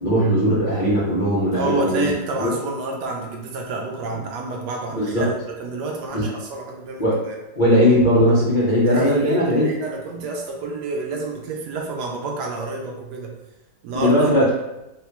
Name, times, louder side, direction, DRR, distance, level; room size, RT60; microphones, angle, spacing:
voice 1, 0.0-2.1 2.4-2.5 4.9-5.3 6.1-6.2 7.0-7.2 7.5-9.7 13.9-14.5, equal, 65° left, -8 dB, 0.4 m, -18 dB
voice 2, 1.5-5.3 5.6-7.4 8.8-13.3 13.8-14.5, right 3 dB, 70° right, 0 dB, 1.1 m, -29 dB
3.9 x 2.2 x 2.9 m, 0.94 s
omnidirectional pair, 1.9 m